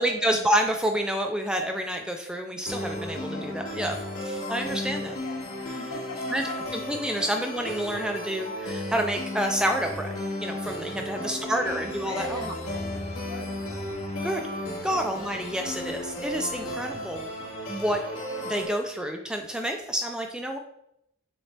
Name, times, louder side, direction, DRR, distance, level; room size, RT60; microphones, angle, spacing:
voice 1, 0.0-4.0 4.3-5.1 6.3-6.4 6.9-10.1 10.4-12.5 14.2-14.5 14.8-17.3 17.7-18.0 18.4-20.6, equal, 5° right, 3 dB, 0.4 m, -28 dB
sound 1, 2.7-18.7, left 1 dB, 80° left, 2.2 m, -34 dB
voice 2, 3.2-4.3 4.6-6.6 7.1-7.3 11.0-15.1 16.5-16.8, left 2 dB, 60° left, 3 dB, 1.1 m, -42 dB
7.1 x 4.0 x 3.3 m, 0.77 s
head